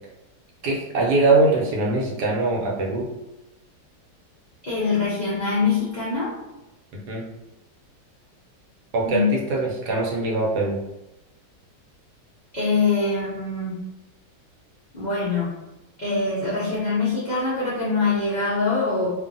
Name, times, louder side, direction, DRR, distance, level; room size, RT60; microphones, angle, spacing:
voice 1, 0.6-3.1 6.9-7.2 8.9-10.8, right 3 dB, 75° right, -2 dB, 1.1 m, -22 dB
voice 2, 4.6-6.3 9.1-9.3 12.5-13.8 14.9-15.6 16.0-19.1, left 4 dB, 75° left, -10 dB, 0.4 m, -24 dB
2.6 x 2.4 x 2.5 m, 0.97 s
omnidirectional pair, 1.8 m